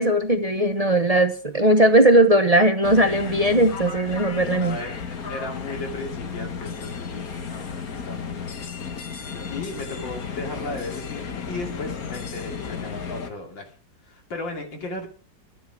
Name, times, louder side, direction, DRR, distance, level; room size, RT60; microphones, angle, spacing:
voice 1, 0.0-4.8, right 1 dB, 30° right, 7 dB, 0.7 m, -18 dB
sound 1, 2.8-13.3, left 6 dB, 50° left, 1.7 m, -34 dB
voice 2, 4.5-8.4 9.3-13.7 14.1-15.1, left 2 dB, 80° left, 2 dB, 3.4 m, -36 dB
12.5 x 10.0 x 6.1 m, 0.41 s
omnidirectional pair, 2.0 m